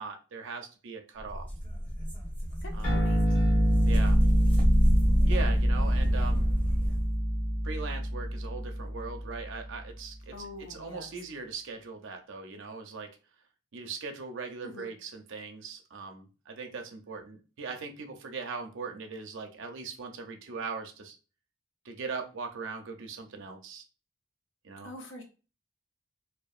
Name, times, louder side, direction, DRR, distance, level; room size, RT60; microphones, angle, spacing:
voice 1, 0.0-1.5 2.7-3.0 3.8-4.2 5.3-6.5 7.6-13.1 13.7-21.2 21.8-23.8 24.6-24.9, right 4 dB, 55° right, 4 dB, 0.5 m, -40 dB
sound 1, 1.2-7.1, equal, 10° left, 0.9 m, -29 dB
voice 2, 2.6-3.2 10.3-11.1 14.6-14.9 24.8-25.2, left 2 dB, 55° left, 2 dB, 0.6 m, -44 dB
sound 2, 2.8-9.7, equal, 40° left, 1.1 m, -26 dB
2.7 x 2.2 x 2.3 m, 0.33 s
head